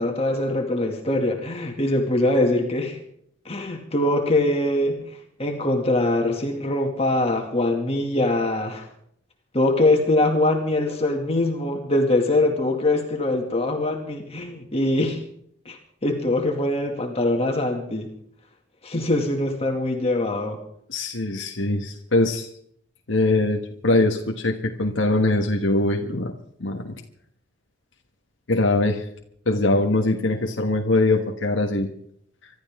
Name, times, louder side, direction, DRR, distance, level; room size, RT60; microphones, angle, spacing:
voice 1, 0.0-3.0 3.4-8.9 9.5-15.2 15.7-18.1 18.8-20.6, left 2 dB, 35° left, 2 dB, 2.3 m, -23 dB
voice 2, 20.9-22.5 23.1-26.3 26.6-26.9 28.5-29.1 29.5-31.9, left 2 dB, 85° left, 2 dB, 1.5 m, -22 dB
26.0 x 13.0 x 3.7 m, 0.66 s
head